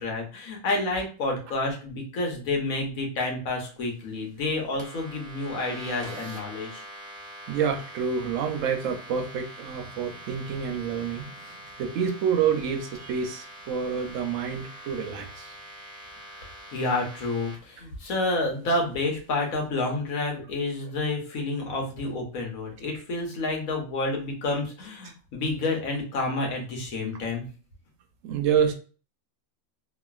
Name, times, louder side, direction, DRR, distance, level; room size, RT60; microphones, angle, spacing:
voice 1, 0.0-6.8 16.7-27.4, left 2 dB, 85° left, 1 dB, 1.3 m, -29 dB
sound 1, 4.8-17.6, right 1 dB, 35° right, 0.7 m, -44 dB
voice 2, 7.5-15.6 28.2-28.7, right 7 dB, 75° right, 7 dB, 0.9 m, -28 dB
3.0 x 2.4 x 2.3 m, 0.37 s
omnidirectional pair, 1.4 m